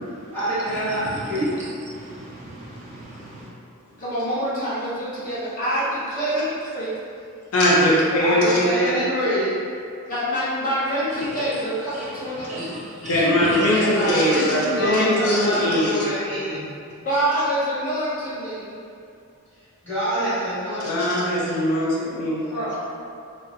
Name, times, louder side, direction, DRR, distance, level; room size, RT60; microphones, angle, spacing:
voice 1, 0.3-1.5 8.2-9.5 13.7-16.7 19.8-21.3 22.4-22.8, equal, 10° left, -14 dB, 1.4 m, -26 dB
voice 2, 1.6-3.5 11.2-11.3 11.9-12.1 12.4-14.2, right 1 dB, 30° right, -6 dB, 0.4 m, -34 dB
voice 3, 4.0-6.5 6.7-7.0 10.1-12.7 17.0-18.8 22.5-22.8, right 1 dB, 40° left, -10 dB, 0.8 m, -26 dB
voice 4, 7.5-8.9 13.0-16.1 20.8-22.4, left 1 dB, 70° left, -5 dB, 0.5 m, -20 dB
4.0 x 2.1 x 2.4 m, 2.5 s
head